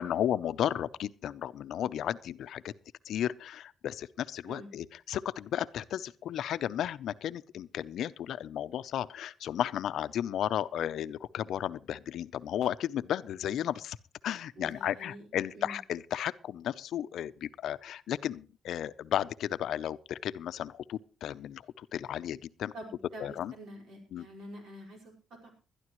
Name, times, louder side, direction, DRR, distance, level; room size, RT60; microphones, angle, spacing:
voice 1, 0.0-2.7 3.1-14.0 14.2-22.7 23.2-23.5 24.1-24.2, left 10 dB, 70° left, 0.5 m, -34 dB
voice 2, 14.6-15.3 15.5-15.8 22.7-25.5, right 1 dB, 65° right, 4.9 m, -47 dB
21.0 x 12.0 x 3.1 m
cardioid pair, 170°, 0 cm